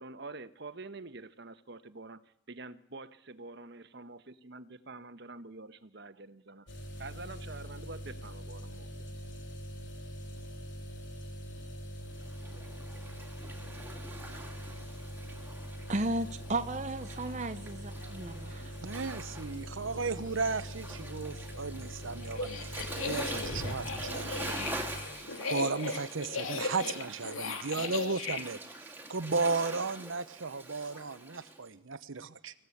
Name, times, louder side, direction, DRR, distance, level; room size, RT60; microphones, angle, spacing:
voice 1, 0.0-2.2 2.5-6.7 7.0-8.9, right 3 dB, 55° right, 1.2 m, -46 dB
sound 1, 6.7-25.0, equal, 60° left, 4.6 m, -43 dB
Waves surf, 12.1-31.6, right 2 dB, 10° right, 2.6 m, -45 dB
voice 2, 15.9-18.7, right 2 dB, 35° right, 0.8 m, -34 dB
voice 3, 18.8-24.5 25.5-28.6 29.1-32.5, right 4 dB, 75° right, 1.0 m, -35 dB
sound 2, 22.2-28.4, left 4 dB, 85° left, 2.9 m, -37 dB
25.0 x 16.0 x 8.6 m
head